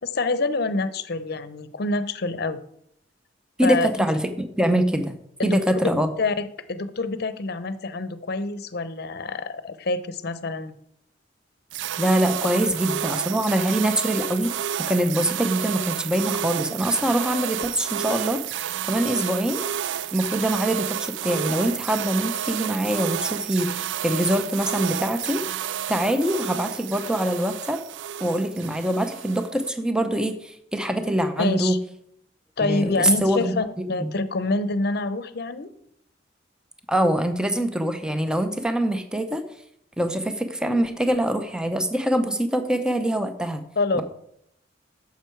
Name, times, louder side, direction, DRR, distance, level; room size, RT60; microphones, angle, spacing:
voice 1, 0.0-2.6 3.6-4.0 5.4-10.7 31.4-31.8 32.6-35.7 43.8-44.0, left 3 dB, 60° left, 13 dB, 0.7 m, -26 dB
voice 2, 3.6-6.1 12.0-14.5 14.9-19.6 20.1-27.8 28.2-31.8 32.6-33.5 34.0-34.1 36.9-39.4 40.0-43.6 43.9-44.0, right 1 dB, 5° right, 8 dB, 0.6 m, -24 dB
sound 1, 11.7-29.7, right 10 dB, 75° right, 0.3 m, -30 dB
9.4 x 7.1 x 4.5 m, 0.72 s
head